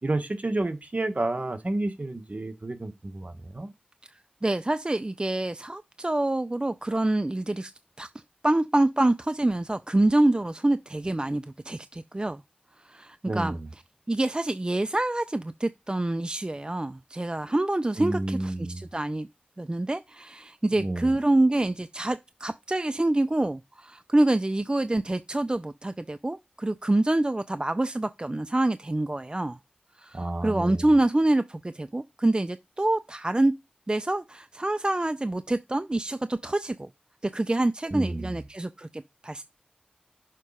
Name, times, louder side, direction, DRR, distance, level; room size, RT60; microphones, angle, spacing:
voice 1, 0.0-3.7 13.3-13.7 18.0-18.8 20.7-21.2 30.1-31.0 37.9-38.4, right 2 dB, 55° right, 1.3 m, -30 dB
voice 2, 4.4-7.7 8.0-8.1 8.4-12.4 12.8-13.6 14.1-19.3 19.6-29.6 30.0-33.5 33.9-36.9 37.2-39.4, right 2 dB, 30° right, 0.4 m, -26 dB
6.6 x 4.0 x 4.9 m
wide cardioid pair, 55°, 3 cm